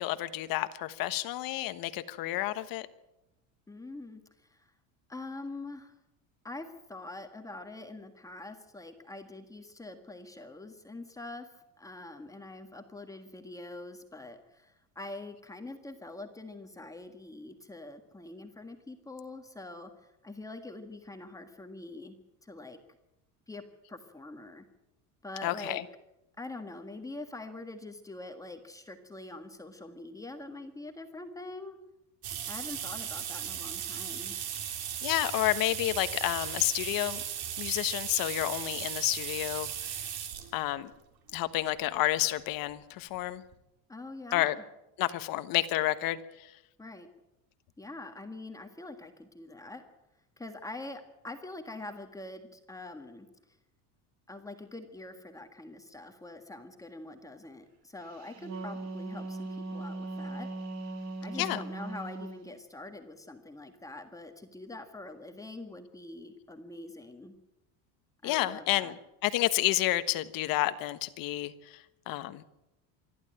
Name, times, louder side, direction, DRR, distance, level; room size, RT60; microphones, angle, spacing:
voice 1, 0.0-2.9 25.4-25.8 35.0-37.2 37.6-39.7 40.5-40.9 41.3-43.4 44.3-44.5 45.0-46.2 61.4-61.6 68.2-69.0 69.2-71.5 72.1-72.4, left 16 dB, 55° left, 13 dB, 1.3 m, -30 dB
voice 2, 3.7-4.7 5.1-5.9 6.4-22.2 22.4-22.8 23.5-23.6 23.9-24.6 25.2-25.8 26.4-31.8 32.5-34.4 43.9-44.6 46.8-47.1 47.8-49.8 50.4-53.6 54.3-60.5 61.2-67.3 68.2-68.9, left 2 dB, 10° left, 5 dB, 1.6 m, -44 dB
sound 1, 32.2-40.5 41.4-41.5 42.7-42.8 43.1-43.2 43.5-43.6, right 9 dB, 60° right, 3.6 m, -37 dB
Wind instrument woodwind instrument, 58.2-62.4, right 2 dB, 40° right, 2.6 m, -39 dB
26.5 x 12.0 x 8.9 m, 0.92 s
cardioid pair, 155°, 41 cm